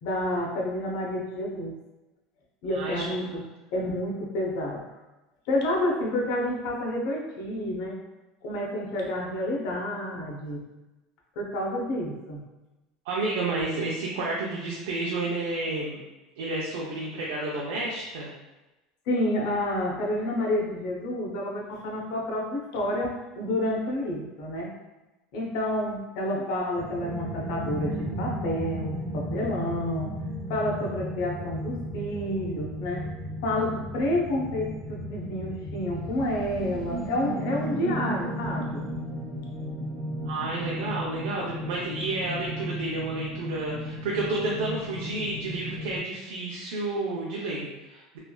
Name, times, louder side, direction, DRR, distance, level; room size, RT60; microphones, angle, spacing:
voice 1, 0.0-1.8 2.6-3.4 3.7-4.8 5.5-8.0 8.4-10.7 11.4-12.4 19.1-24.7 25.3-30.1 30.5-33.1 33.4-38.9, left 1 dB, 70° left, -2 dB, 0.7 m, -29 dB
voice 2, 2.7-3.1 13.1-16.0 16.4-18.3 40.3-48.2, right 2 dB, 85° right, -4 dB, 0.5 m, -31 dB
sound 1, 26.7-46.0, equal, 55° right, 1.0 m, -35 dB
3.1 x 2.3 x 2.2 m, 1.1 s
supercardioid pair, 140°, 0 cm